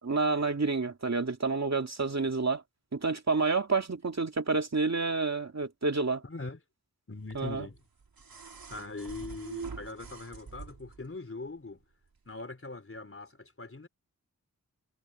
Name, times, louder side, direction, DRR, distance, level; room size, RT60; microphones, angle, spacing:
voice 1, 0.0-2.6 2.9-6.2 7.3-7.7, right 4 dB, 50° right, 2.4 m, -29 dB
voice 2, 6.2-6.6 7.1-7.8 8.7-11.8 12.2-13.9, left 3 dB, 40° left, 3.5 m, -41 dB
sound 1, 7.3-11.1 12.3-12.4, right 5 dB, 80° right, 3.7 m, -45 dB
wide cardioid pair, 55°, 35 cm